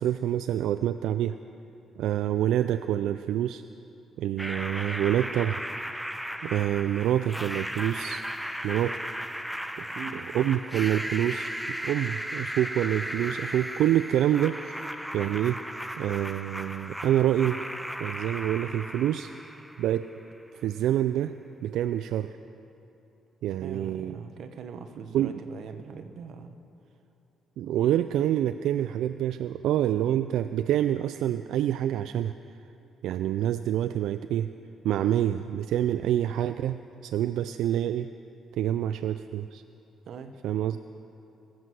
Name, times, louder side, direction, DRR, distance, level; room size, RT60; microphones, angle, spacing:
voice 1, 0.0-1.4 2.0-3.6 4.2-5.6 6.4-8.2 8.6-9.0 10.1-14.8 15.1-15.6 16.0-17.6 18.0-19.3 19.8-20.1 20.5-21.3 21.6-22.4 23.4-24.2 25.1-25.4 27.6-32.3 33.0-34.5 34.8-38.1 38.5-39.6 40.4-40.8, right 11 dB, 80° right, 10 dB, 0.3 m, -27 dB
sound 1, 4.4-20.3, equal, ahead, 0.5 m, -36 dB
voice 2, 9.8-10.2 23.6-26.6 40.0-40.4, right 6 dB, 60° right, 8 dB, 1.0 m, -41 dB
21.5 x 7.8 x 6.3 m, 2.9 s
cardioid pair, 140°, 0 cm